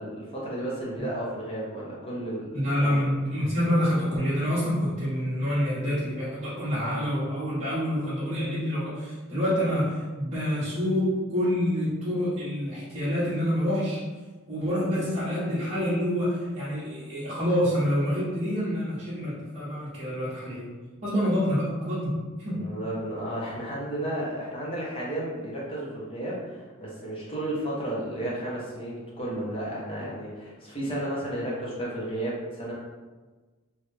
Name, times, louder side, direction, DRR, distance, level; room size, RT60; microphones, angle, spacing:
voice 1, 0.0-2.6 2.8-3.0 22.5-32.7, right 1 dB, 25° left, -6 dB, 0.8 m, -33 dB
voice 2, 2.5-14.0 14.5-20.7 21.0-22.1 22.4-22.6, equal, 35° right, -13 dB, 0.9 m, -27 dB
3.1 x 2.3 x 3.2 m, 1.3 s
head